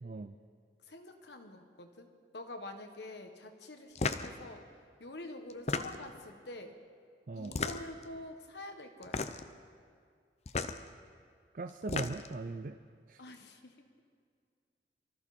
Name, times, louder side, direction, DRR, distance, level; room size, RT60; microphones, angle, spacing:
voice 1, 0.0-0.4 7.3-7.5 11.5-12.7 13.1-13.2, right 3 dB, 50° right, 7 dB, 0.5 m, -39 dB
voice 2, 0.9-4.7 5.0-6.8 7.3-9.2 13.2-13.8, left 2 dB, 75° left, 6 dB, 1.5 m, -47 dB
sound 1, 4.0-4.3 5.5-6.2 7.4-8.0 9.0-9.5 10.5-10.8 11.7-12.4, left 4 dB, 35° left, 0.6 m, -34 dB
23.5 x 14.0 x 4.3 m, 2.2 s
head